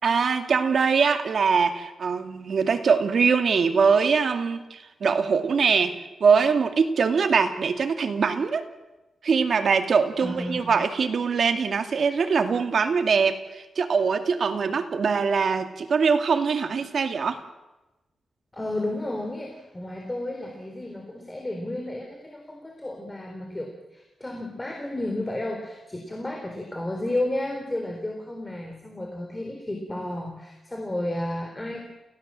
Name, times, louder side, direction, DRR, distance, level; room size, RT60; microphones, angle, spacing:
voice 1, 0.0-8.7 9.2-17.4, right 5 dB, 60° right, 6 dB, 2.3 m, -23 dB
voice 2, 10.2-10.7 18.5-31.9, left 1 dB, 15° left, 2 dB, 3.8 m, -32 dB
29.5 x 16.5 x 7.6 m, 1.0 s
wide cardioid pair, 115°, 0 cm